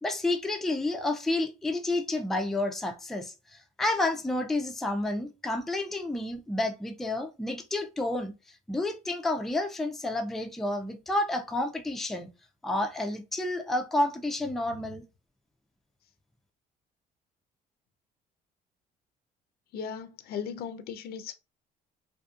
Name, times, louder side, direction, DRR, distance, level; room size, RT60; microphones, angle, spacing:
voice 1, 0.0-12.3 12.6-15.0, left 2 dB, ahead, 0.3 m, -30 dB
voice 2, 19.7-21.4, left 7 dB, 65° left, 0.4 m, -37 dB
2.6 x 2.5 x 2.3 m
cardioid pair, 110°, 17 cm